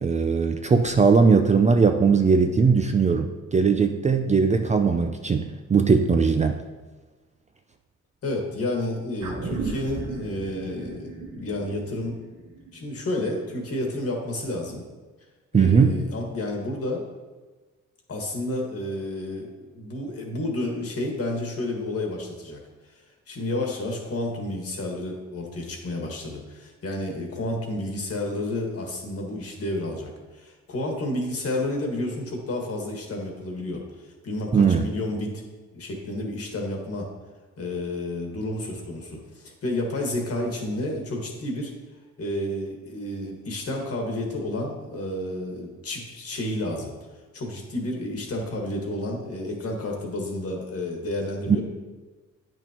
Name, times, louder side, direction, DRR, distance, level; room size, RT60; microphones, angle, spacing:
voice 1, 0.0-6.6 15.5-15.9 34.5-34.8, right 5 dB, 25° right, 6 dB, 0.4 m, -19 dB
voice 2, 8.2-12.2 12.7-14.8 15.5-17.0 18.1-22.6 23.3-33.8 34.2-35.4 35.7-37.1 37.6-41.7 42.2-46.9 47.3-51.6, left 1 dB, 50° left, 1 dB, 1.8 m, -30 dB
sound 1, 9.2-13.8 14.1-14.2, right 3 dB, 80° right, 1.5 m, -36 dB
8.9 x 6.2 x 3.0 m, 1.3 s
cardioid pair, 90°, 30 cm